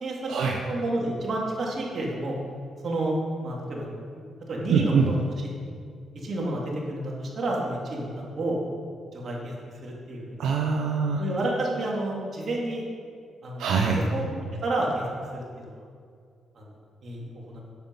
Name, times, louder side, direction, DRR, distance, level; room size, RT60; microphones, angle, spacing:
voice 1, 0.0-2.3 2.8-3.9 4.5-5.1 5.7-5.8 6.1-8.6 9.1-9.5 9.8-10.4 11.2-12.9 13.4-13.8 14.1-14.2 14.6-15.0 15.3-15.8 16.6-16.7 17.0-17.6, right 1 dB, 50° right, -2 dB, 2.6 m, -30 dB
voice 2, 4.7-5.2 10.4-11.2 13.6-14.1, right 5 dB, 80° right, 1 dB, 0.8 m, -23 dB
9.3 x 7.4 x 5.4 m, 2.2 s
cardioid pair, 75°, 0 cm